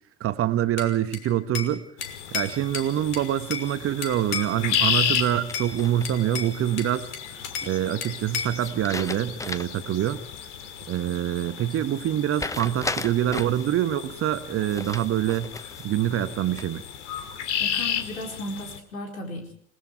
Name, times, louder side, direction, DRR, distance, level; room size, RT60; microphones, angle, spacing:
voice 1, 0.2-1.8 2.3-7.1 7.6-10.2 10.9-15.5 15.8-16.8, right 11 dB, 35° right, 11 dB, 1.3 m, -25 dB
Bell / Glass, 0.8-1.7 2.0-3.7 4.0-4.9 5.1-5.7 6.0-7.7 8.0-8.6, left 6 dB, 40° left, 3.4 m, -33 dB
sound 1, 2.0-18.8, left 9 dB, 60° left, 2.5 m, -33 dB
sound 2, 5.5-6.4 8.6-9.9 10.3-10.4 12.4-13.7 14.7-15.9 16.3-16.9, left 3 dB, 10° left, 0.9 m, -35 dB
voice 2, 17.6-19.5, left 1 dB, 75° left, 2 dB, 4.7 m, -35 dB
28.5 x 19.0 x 4.7 m, 0.63 s
figure-of-eight pair, 75°, 40 cm